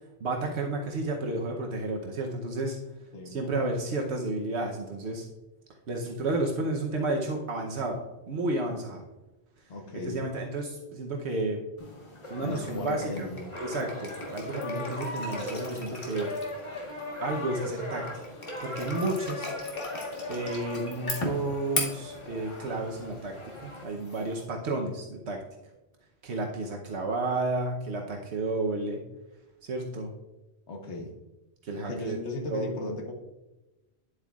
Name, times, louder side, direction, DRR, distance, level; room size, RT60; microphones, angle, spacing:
voice 1, 0.2-2.8 3.2-5.3 5.9-8.0 8.3-9.0 10.0-11.6 12.3-13.3 13.6-16.3 17.2-18.1 18.6-19.5 20.3-23.3 23.6-25.4 26.2-29.0 29.6-30.1 31.6-32.2 32.5-32.8, right 2 dB, 80° right, 1 dB, 1.1 m, -31 dB
voice 2, 9.7-10.2 12.4-13.5 30.7-31.1 31.7-33.1, left 1 dB, 85° left, 1 dB, 1.4 m, -36 dB
sound 1, 11.8-24.4, left 2 dB, 55° left, 1.5 m, -39 dB
sound 2, 12.2-23.8, left 2 dB, 30° left, 1.3 m, -39 dB
10.0 x 7.9 x 2.4 m, 1.0 s
omnidirectional pair, 1.1 m